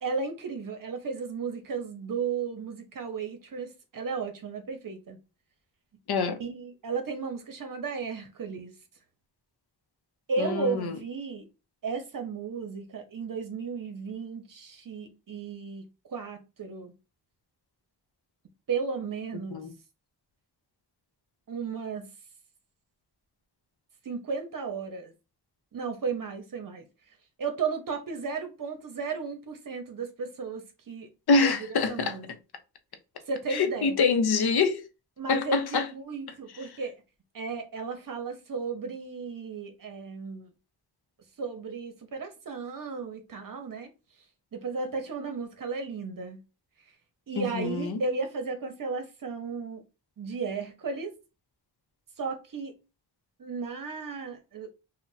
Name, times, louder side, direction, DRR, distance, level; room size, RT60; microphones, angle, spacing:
voice 1, 0.0-5.2 6.4-8.7 10.3-11.5 11.8-16.9 18.7-19.6 21.5-22.1 24.0-25.1 25.7-26.9 27.4-31.1 31.4-32.4 33.3-34.0 35.2-36.9 37.3-40.5 41.4-43.9 44.5-46.4 47.3-49.8 50.2-51.1 52.2-52.8 53.4-54.7, right 5 dB, 50° right, 0.7 m, -34 dB
voice 2, 6.1-6.4 10.4-10.9 19.5-19.7 31.3-32.2 33.5-34.8 35.3-35.8 47.4-48.0, left 4 dB, 65° left, 0.6 m, -25 dB
2.4 x 2.2 x 3.9 m
wide cardioid pair, 120°, 42 cm